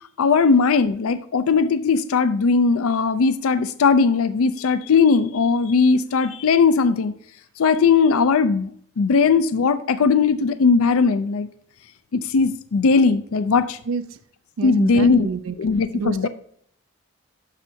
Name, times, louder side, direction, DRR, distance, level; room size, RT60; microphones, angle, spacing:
voice 1, 0.2-7.1 7.6-8.7 9.0-11.5 12.1-13.8 14.6-15.3 15.6-16.3, left 5 dB, 70° left, 13 dB, 0.4 m, -18 dB
voice 2, 14.6-15.5 15.9-16.3, right 4 dB, 65° right, 10 dB, 0.4 m, -27 dB
10.5 x 6.2 x 2.7 m, 0.62 s
head